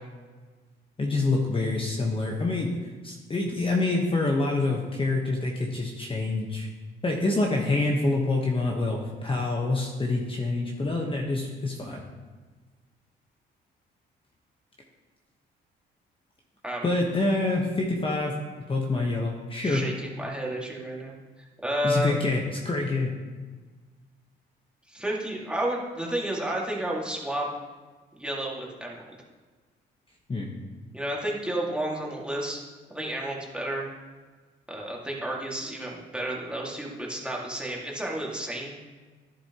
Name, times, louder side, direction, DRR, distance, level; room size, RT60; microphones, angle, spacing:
voice 1, 1.0-6.7 7.0-12.0 16.8-18.3 18.7-19.8 21.8-23.1 30.3-30.5, left 2 dB, 25° left, 0 dB, 1.1 m, -26 dB
voice 2, 19.6-21.1 21.6-22.2 24.9-27.5 28.2-29.0 30.9-32.6 32.9-33.9 34.7-38.8, right 1 dB, 5° right, -3 dB, 1.9 m, -31 dB
11.0 x 7.1 x 2.9 m, 1.4 s
cardioid pair, 90°, 20 cm